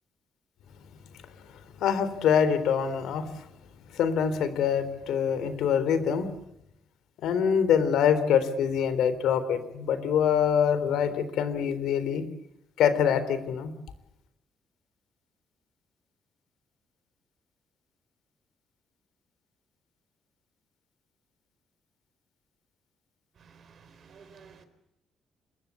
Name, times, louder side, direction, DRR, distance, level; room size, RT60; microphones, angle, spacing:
voice 1, 1.8-3.2 3.9-6.3 7.2-12.2 12.8-13.7, left 8 dB, 85° left, 3.6 m, -25 dB
voice 2, 23.4-24.6, right 6 dB, 45° right, 4.0 m, -53 dB
26.5 x 22.0 x 8.6 m
cardioid pair, 145°, 0 cm